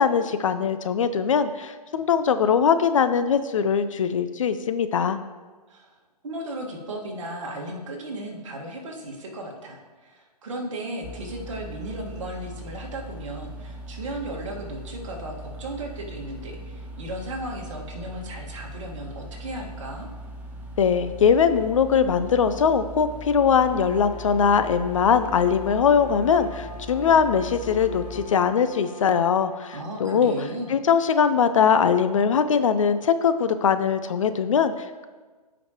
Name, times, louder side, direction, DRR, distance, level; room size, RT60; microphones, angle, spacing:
voice 1, 0.0-5.2 20.8-30.3 30.7-35.0, left 6 dB, 50° left, 11 dB, 0.5 m, -21 dB
voice 2, 6.2-20.1 29.7-30.7, right 1 dB, 50° right, 0 dB, 1.7 m, -35 dB
sound 1, 11.0-28.3, right 1 dB, 5° right, 0.7 m, -40 dB
Bowed string instrument, 23.3-30.8, left 6 dB, 75° left, 2.1 m, -41 dB
15.0 x 5.1 x 3.0 m, 1.4 s
figure-of-eight pair, 130°, 21 cm